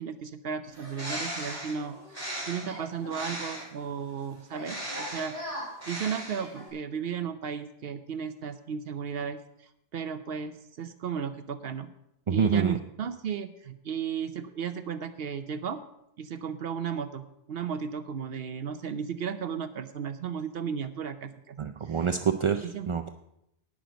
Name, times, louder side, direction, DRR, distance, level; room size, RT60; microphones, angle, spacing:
voice 1, 0.0-5.3 5.9-11.9 12.3-15.8 16.2-21.6 21.8-22.2 22.6-22.9, right 7 dB, 70° right, 10 dB, 0.9 m, -35 dB
Bird, 0.7-3.8 4.5-6.7, equal, 15° right, 4.6 m, -37 dB
voice 2, 12.3-12.8 21.6-23.1, right 6 dB, 45° right, 7 dB, 0.4 m, -26 dB
18.5 x 6.4 x 5.1 m, 0.80 s
omnidirectional pair, 1.1 m